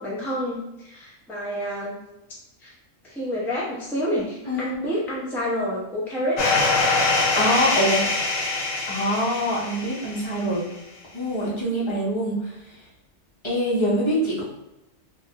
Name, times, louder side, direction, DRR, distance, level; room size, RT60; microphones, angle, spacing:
voice 1, 0.0-2.0 2.6-2.7 3.0-6.4, equal, 5° left, -5 dB, 0.4 m, -28 dB
voice 2, 4.5-4.9 7.3-8.0 8.9-10.6 11.1-12.6 13.4-14.4, equal, 25° left, -7 dB, 0.8 m, -24 dB
sound 1, 6.4-10.4, left 3 dB, 60° left, 0.7 m, -23 dB
3.1 x 2.4 x 2.8 m, 0.91 s
omnidirectional pair, 1.4 m